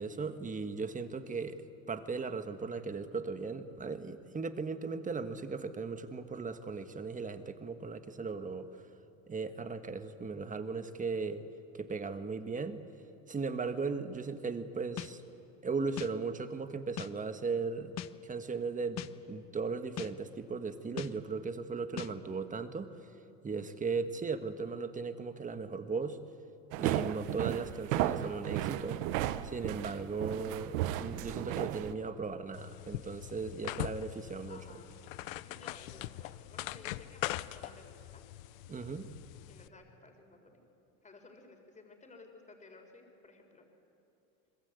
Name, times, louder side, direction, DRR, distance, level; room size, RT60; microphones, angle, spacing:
voice 1, 0.0-1.6 1.9-8.7 9.3-11.5 11.7-12.8 13.3-15.2 15.6-17.9 18.2-22.9 23.4-26.2 26.8-29.0 29.4-34.6 38.7-39.1, right 4 dB, 20° right, 10 dB, 1.5 m, -37 dB
sound 1, 15.0-15.1 16.0-16.1 17.0-17.1 18.0-18.1 19.0-19.1 20.0-20.1 21.0-21.1 22.0-22.1, left 12 dB, 40° left, 1.0 m, -39 dB
sound 2, 26.7-31.9, right 13 dB, 85° right, 1.1 m, -34 dB
sound 3, 32.5-39.7, left 16 dB, 90° left, 0.8 m, -42 dB
voice 2, 34.5-38.2 39.5-40.6 41.0-43.7, left 3 dB, 20° left, 3 dB, 4.1 m, -56 dB
27.0 x 21.0 x 8.2 m, 2.9 s
supercardioid pair, 115°, 40 cm